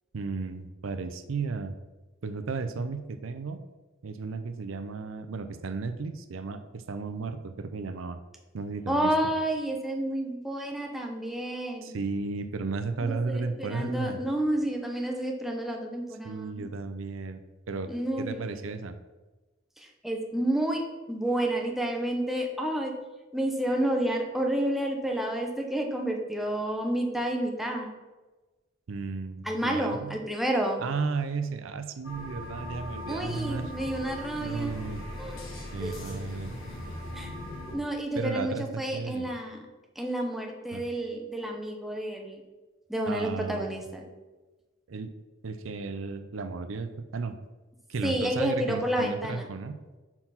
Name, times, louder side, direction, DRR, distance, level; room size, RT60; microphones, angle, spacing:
voice 1, 0.1-1.8 2.2-3.6 4.0-8.2 8.5-9.1 11.8-14.2 16.2-17.4 17.7-17.9 18.2-19.0 28.9-30.2 30.8-33.7 34.4-35.0 35.7-36.6 38.1-39.3 40.7-40.9 43.1-43.9 44.9-45.1 45.4-47.4 47.9-49.8, right 4 dB, 75° right, 9 dB, 0.5 m, -34 dB
voice 2, 8.9-11.9 13.0-16.7 17.9-18.6 19.8-22.9 23.3-27.9 29.4-30.8 33.1-34.8 35.2-35.4 35.8-35.9 37.1-37.3 37.7-39.6 40.0-42.4 42.9-44.0 48.0-49.5, right 1 dB, ahead, 1 dB, 0.9 m, -30 dB
sound 1, 32.0-37.8, left 1 dB, 80° left, 2.0 m, -39 dB
5.8 x 4.4 x 5.7 m, 1.2 s
head